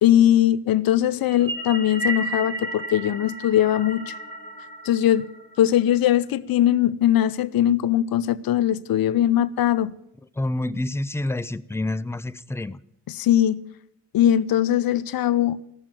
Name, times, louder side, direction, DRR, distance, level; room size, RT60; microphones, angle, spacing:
voice 1, 0.0-4.2 4.8-9.9 13.1-13.7 14.1-15.6, left 11 dB, 55° left, 0.6 m, -20 dB
sound 1, 1.3-5.8, right 1 dB, 30° right, 3.0 m, -33 dB
voice 2, 10.4-12.8, left 2 dB, 5° left, 0.4 m, -28 dB
14.0 x 6.1 x 9.0 m
supercardioid pair, 40°, 42 cm